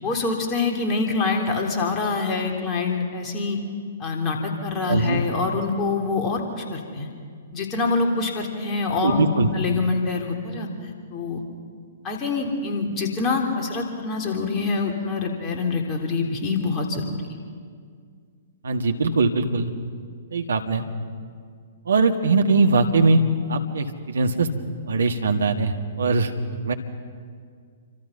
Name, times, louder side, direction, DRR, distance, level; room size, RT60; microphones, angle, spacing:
voice 1, 0.0-3.6 4.0-7.1 7.5-11.4 12.0-17.2, left 4 dB, 25° left, 1 dB, 3.5 m, -25 dB
voice 2, 4.9-5.2 9.0-9.5 18.6-19.7 20.3-20.9 21.9-23.2 23.5-24.5 24.9-26.3 26.6-26.7, right 3 dB, 65° right, 5 dB, 1.8 m, -21 dB
28.5 x 25.5 x 5.8 m, 2.1 s
figure-of-eight pair, 115°, 0 cm